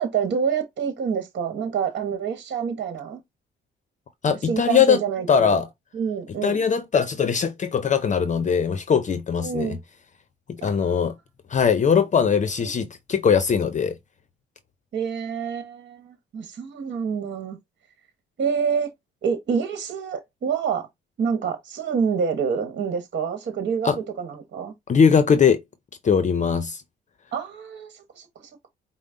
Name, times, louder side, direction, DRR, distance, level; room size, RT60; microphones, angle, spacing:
voice 1, 0.0-3.2 4.3-5.6 5.9-6.6 9.4-9.8 10.6-10.8 12.6-12.7 14.9-17.6 18.4-18.9 19.2-20.9 21.2-23.9 24.2-24.7 27.3-28.7, right 6 dB, 60° right, 1.2 m, -27 dB
voice 2, 4.2-5.0 5.3-5.7 6.4-9.8 10.5-11.1 11.5-14.0 23.8-24.0 24.9-25.6 26.0-26.8, left 6 dB, 40° left, 0.6 m, -20 dB
5.2 x 2.0 x 3.7 m
cardioid pair, 90°, 20 cm